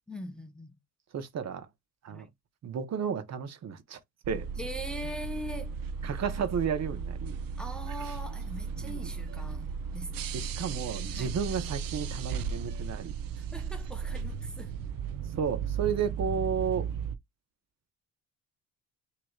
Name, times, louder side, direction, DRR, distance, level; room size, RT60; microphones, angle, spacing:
voice 1, 0.1-0.7 2.1-2.3 4.6-5.7 7.6-9.7 9.9-10.3 11.1-11.3 13.3-14.7, equal, ahead, 0.8 m, -41 dB
voice 2, 1.1-1.7 2.0-2.3 2.6-4.0 4.3-4.5 6.0-7.4 8.8-9.1 10.3-13.1 15.4-16.9, right 6 dB, 45° right, 1.0 m, -32 dB
sound 1, 4.2-17.2, right 6 dB, 70° right, 0.8 m, -35 dB
6.3 x 3.0 x 2.4 m
cardioid pair, 110°, 36 cm